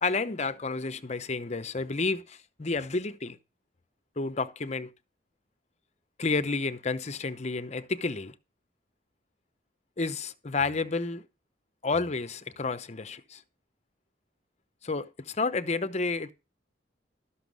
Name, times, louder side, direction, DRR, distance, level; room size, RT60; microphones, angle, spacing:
voice 1, 0.0-3.4 4.2-4.9 6.2-8.3 10.0-11.2 11.8-13.4 14.8-16.3, left 3 dB, 35° left, 0.8 m, -30 dB
12.5 x 6.1 x 5.2 m
head